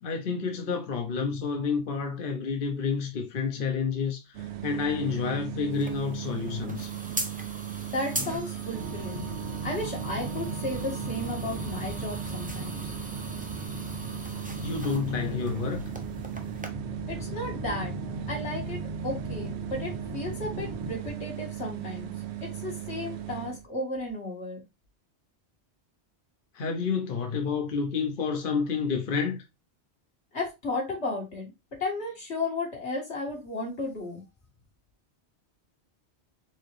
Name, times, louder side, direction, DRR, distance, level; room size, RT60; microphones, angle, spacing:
voice 1, 0.0-6.9 14.6-15.8 26.5-29.4, left 5 dB, 55° left, 0.9 m, -29 dB
sound 1, 4.3-23.6, right 12 dB, 75° right, 0.9 m, -38 dB
sound 2, 5.7-16.7, right 1 dB, 10° right, 0.6 m, -41 dB
voice 2, 7.9-9.3 9.6-12.9 17.1-18.0 18.3-22.1 22.4-24.6 30.3-31.5 31.8-34.2, left 2 dB, 80° left, 2.1 m, -34 dB
sound 3, 8.7-20.9, equal, 60° right, 1.7 m, -39 dB
4.6 x 3.5 x 3.2 m
omnidirectional pair, 1.1 m